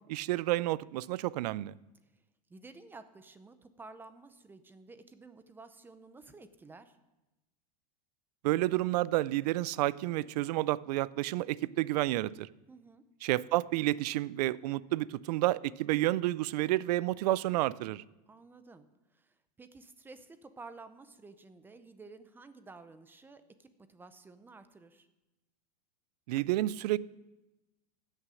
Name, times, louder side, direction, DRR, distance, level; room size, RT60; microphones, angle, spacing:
voice 1, 0.1-1.7 8.4-12.5 13.2-18.0 26.3-27.0, right 16 dB, 70° right, 21 dB, 0.4 m, -30 dB
voice 2, 2.5-7.0 12.7-13.1 18.3-25.1, right 3 dB, 10° right, 11 dB, 0.6 m, -52 dB
16.0 x 6.6 x 6.2 m, 1.0 s
supercardioid pair, 150°, 21 cm